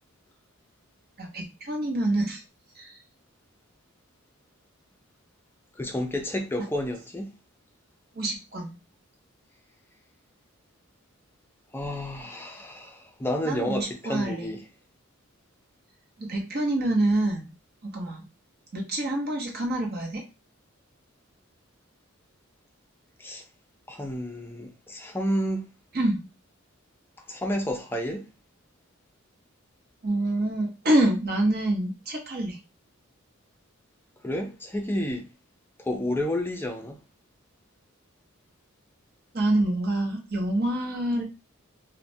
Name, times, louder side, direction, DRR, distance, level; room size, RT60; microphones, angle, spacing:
voice 1, 1.2-2.4 2.8-3.0 8.1-8.8 13.4-14.5 16.2-17.5 17.8-18.3 18.7-20.2 25.9-26.3 30.0-32.6 39.3-41.2, right 1 dB, 50° right, 0.8 m, -26 dB
voice 2, 5.8-7.3 11.7-14.6 23.2-23.4 23.9-25.6 27.3-28.3 34.2-35.3 35.8-37.0, equal, 10° left, 0.4 m, -30 dB
3.1 x 2.1 x 2.6 m
head